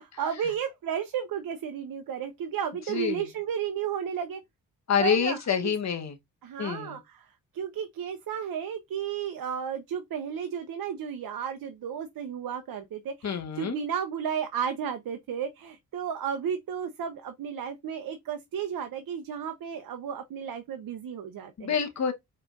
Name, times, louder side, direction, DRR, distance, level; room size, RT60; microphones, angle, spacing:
voice 1, 0.0-4.4 5.0-5.7 6.4-7.3 7.5-21.8, right 8 dB, 60° right, 0.8 m, -33 dB
voice 2, 2.9-3.2 4.9-6.1 6.6-7.0 13.2-13.8 21.6-22.1, left 7 dB, 45° left, 1.1 m, -27 dB
4.9 x 3.3 x 2.5 m
hypercardioid pair, 40°, 38 cm